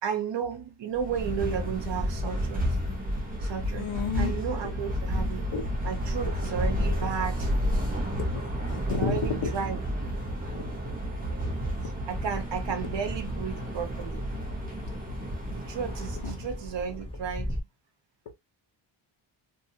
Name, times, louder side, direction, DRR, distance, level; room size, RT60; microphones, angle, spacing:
voice 1, 0.0-2.6 3.4-5.4 5.8-7.5 8.8-9.8 12.1-14.3 15.5-17.6, right 7 dB, 60° right, 0.9 m, -33 dB
sound 1, 0.9-16.7, equal, 15° right, 0.9 m, -31 dB
voice 2, 3.8-4.3 5.5-5.7 6.8-6.9 7.8-9.2 10.5-10.6 16.2-16.4, left 7 dB, 65° left, 1.0 m, -32 dB
Fixed-wing aircraft airplane, 12.1-17.6, left 1 dB, 10° left, 0.5 m, -39 dB
2.7 x 2.6 x 2.8 m
wide cardioid pair, 140°, 49 cm